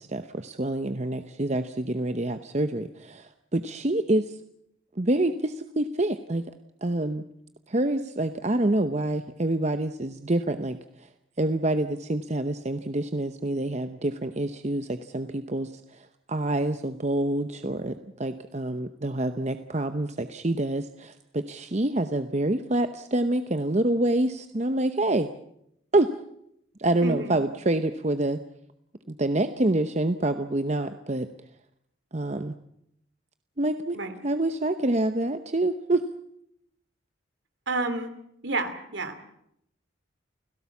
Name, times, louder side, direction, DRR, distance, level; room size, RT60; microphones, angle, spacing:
voice 1, 0.0-4.4 5.0-6.4 6.8-7.2 7.7-11.1 11.4-25.3 25.9-26.1 26.8-28.4 29.1-31.3 32.1-32.5 33.6-36.0, right 1 dB, 35° right, 9 dB, 0.8 m, -27 dB
voice 2, 27.0-27.3 33.9-34.1 37.7-38.1 38.4-39.2, right 2 dB, 65° right, 9 dB, 2.7 m, -30 dB
29.5 x 17.0 x 7.2 m, 0.75 s
head